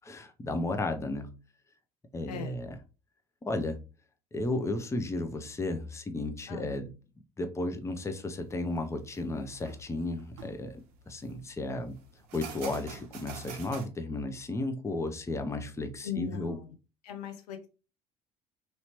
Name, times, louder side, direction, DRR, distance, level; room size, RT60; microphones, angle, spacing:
voice 1, 0.0-1.4 2.1-2.7 3.4-3.8 4.3-6.9 7.4-10.7 11.1-12.0 12.3-16.6, left 2 dB, 15° left, 0.6 m, -34 dB
voice 2, 2.3-2.6 6.5-6.7 16.0-16.8 17.0-17.7, left 7 dB, 75° left, 0.6 m, -39 dB
sound 1, 8.5-13.9, right 6 dB, 70° right, 0.6 m, -48 dB
3.1 x 2.8 x 2.9 m
hypercardioid pair, 60°, 21 cm